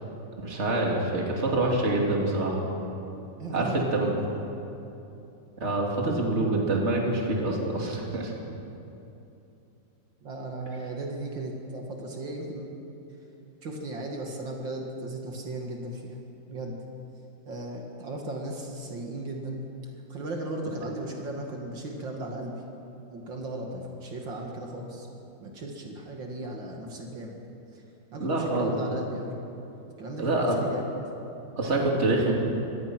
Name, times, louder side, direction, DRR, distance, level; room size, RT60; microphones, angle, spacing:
voice 1, 0.4-2.6 3.5-4.1 5.6-8.3 28.2-28.8 30.2-30.6 31.6-32.3, right 2 dB, 35° right, -1 dB, 2.9 m, -26 dB
voice 2, 3.4-4.4 10.2-12.7 13.6-16.2 16.5-16.8 17.5-19.6 20.1-22.6 23.1-25.1 25.4-27.4 27.7-27.8 28.1-29.4 30.0-30.9, right 2 dB, 75° right, 0 dB, 2.8 m, -36 dB
25.5 x 18.0 x 6.2 m, 2.9 s
omnidirectional pair, 2.1 m